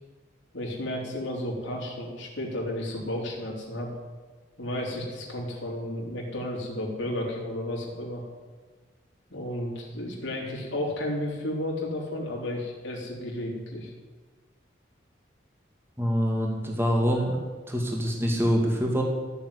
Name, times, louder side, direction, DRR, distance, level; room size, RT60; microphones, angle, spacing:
voice 1, 0.5-3.9 4.6-8.2 9.3-13.9, left 1 dB, 90° left, -2 dB, 3.7 m, -32 dB
voice 2, 16.0-17.4 17.7-19.0, equal, 10° right, 0 dB, 2.3 m, -25 dB
15.0 x 7.3 x 9.9 m, 1.4 s
head